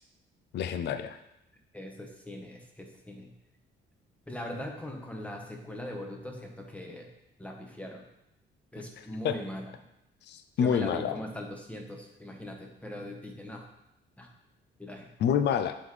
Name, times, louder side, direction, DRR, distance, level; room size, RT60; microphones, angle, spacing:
voice 1, 0.5-1.2 9.2-9.3 10.3-11.2 15.2-15.7, left 8 dB, 60° left, 10 dB, 0.4 m, -27 dB
voice 2, 1.7-3.3 4.3-7.1 7.4-8.1 8.7-9.6 10.6-13.7 14.2-14.3 14.8-15.1, left 1 dB, 5° left, 1 dB, 1.1 m, -40 dB
7.8 x 3.7 x 3.2 m, 0.85 s
cardioid pair, 90°, 20 cm